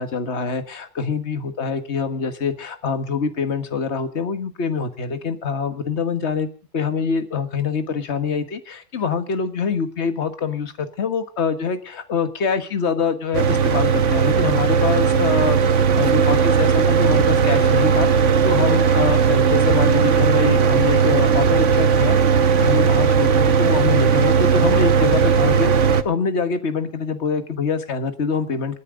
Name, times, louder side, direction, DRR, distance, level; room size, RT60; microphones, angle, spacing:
voice 1, 0.0-6.5 6.7-22.2 22.6-28.8, left 5 dB, 50° left, 9 dB, 1.7 m, -25 dB
Mechanical fan, 13.3-26.0, right 6 dB, 60° right, 1.3 m, -17 dB
28.0 x 10.0 x 3.8 m, 0.40 s
omnidirectional pair, 1.5 m